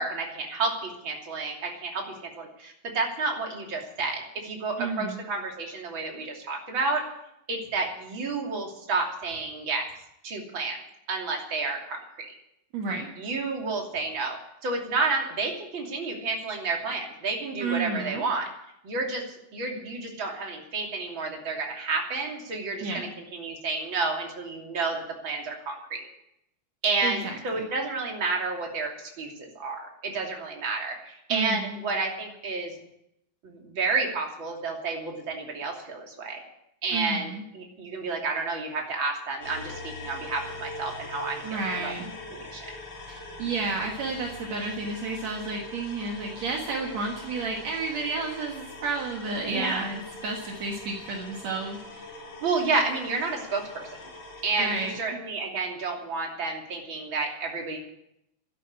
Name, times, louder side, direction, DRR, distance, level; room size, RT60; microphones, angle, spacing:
voice 1, 0.0-2.1 2.4-7.1 7.5-9.9 10.2-10.8 11.1-12.0 13.2-18.5 18.8-19.2 19.5-26.1 26.8-32.7 33.4-36.4 36.8-41.9 42.3-42.8 49.4-49.9 52.4-54.0 54.4-57.8, right 3 dB, 40° right, 0 dB, 3.5 m, -30 dB
voice 2, 4.8-5.2 12.7-13.1 17.6-18.2 22.8-23.1 27.0-27.6 31.3-31.8 36.9-37.4 41.4-42.1 43.1-52.1 54.6-55.2, right 3 dB, 65° right, 0 dB, 2.8 m, -31 dB
sound 1, 39.4-55.0, left 2 dB, 55° left, 4.7 m, -42 dB
13.0 x 11.0 x 9.7 m, 0.79 s
omnidirectional pair, 3.4 m